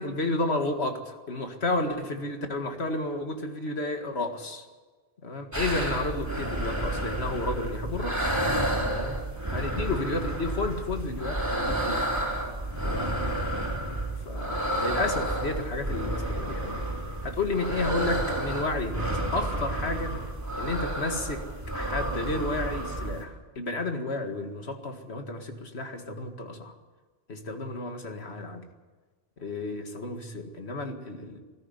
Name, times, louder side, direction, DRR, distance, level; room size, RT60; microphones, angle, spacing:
voice 1, 0.0-4.7 5.2-8.4 8.8-9.2 9.5-12.1 12.8-13.4 14.3-16.9 17.2-20.2 20.6-21.5 21.7-26.7 27.3-28.6 29.4-31.4, left 2 dB, 85° left, 5 dB, 2.2 m, -32 dB
sound 1, 5.5-23.2, right 1 dB, 15° right, 3.7 m, -30 dB
20.5 x 13.5 x 9.6 m, 1.4 s
omnidirectional pair, 1.1 m